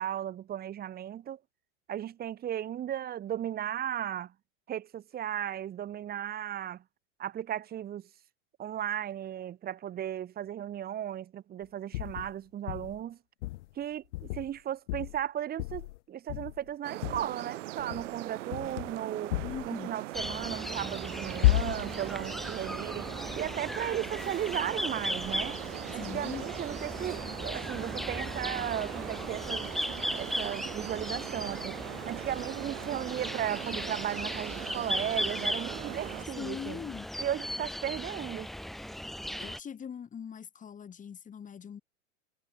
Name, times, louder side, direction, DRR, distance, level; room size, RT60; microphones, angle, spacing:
voice 1, 0.0-1.4 1.9-4.3 4.7-6.8 7.2-8.1 8.6-13.2 13.7-19.4 19.6-23.1 23.4-25.6 25.9-29.7 30.1-31.8 32.1-36.8 37.2-38.5, right 11 dB, 25° right, 1.7 m, -36 dB
sound 1, 11.9-12.3 12.7-13.0 13.4-13.7 14.1-14.6 14.9-15.2 15.6-16.0 16.3-16.7 17.0-17.3 17.8-18.1 18.5-18.9 19.3-19.7 21.4-22.0, left 19 dB, 60° left, 0.9 m, -31 dB
sound 2, 16.8-36.3, right 16 dB, 65° right, 4.5 m, -41 dB
voice 2, 19.4-19.9 25.9-26.5 36.4-37.1 39.4-41.8, left 7 dB, 20° left, 4.6 m, -41 dB
sound 3, 20.1-39.6, equal, ahead, 0.5 m, -37 dB
hypercardioid pair, 130°, 40 cm